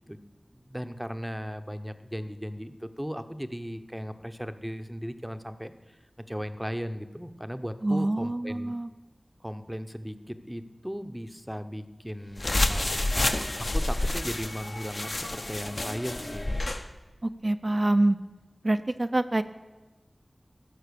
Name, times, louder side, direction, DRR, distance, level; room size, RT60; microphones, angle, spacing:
voice 1, 0.5-6.0 6.3-8.8 9.4-13.1 13.6-16.6, equal, 5° right, 9 dB, 0.7 m, -37 dB
voice 2, 7.8-8.9 17.2-18.2 18.6-19.4, right 1 dB, 40° right, 9 dB, 0.4 m, -25 dB
sound 1, 12.4-16.8, left 2 dB, 50° left, 0.8 m, -29 dB
14.5 x 5.6 x 6.7 m, 1.2 s
wide cardioid pair, 65°, 0 cm